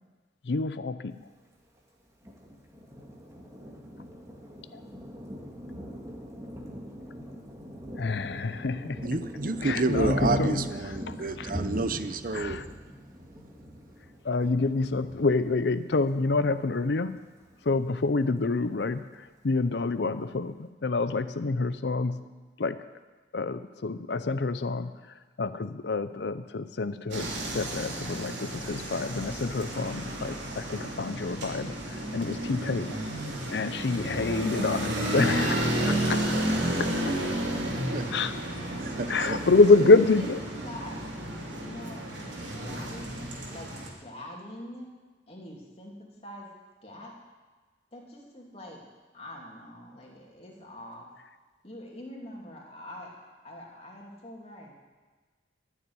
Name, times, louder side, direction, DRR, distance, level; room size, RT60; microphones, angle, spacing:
voice 1, 0.4-1.2 4.7-4.8 8.0-9.1 9.6-10.6 11.1-11.5 12.3-12.6 14.2-17.3 17.6-22.3 22.6-22.9 23.3-33.0 33.5-37.1 38.1-38.3 39.1-40.4, left 3 dB, 65° left, 13 dB, 0.6 m, -27 dB
Thunder, 2.2-16.6 17.0-17.2 17.5-18.1, equal, 15° right, 1.9 m, -38 dB
voice 2, 9.0-12.6 37.7-38.1 38.8-39.4, right 3 dB, 50° right, 11 dB, 0.7 m, -30 dB
sound 1, 27.1-43.9, right 1 dB, 90° right, 3.1 m, -32 dB
voice 3, 39.2-43.2 43.5-43.7 44.0-44.9 45.3-46.5 46.8-47.1 47.9-48.8 49.1-51.1 51.6-54.7, left 1 dB, 35° left, -2 dB, 2.8 m, -44 dB
13.5 x 7.3 x 9.7 m, 1.3 s
head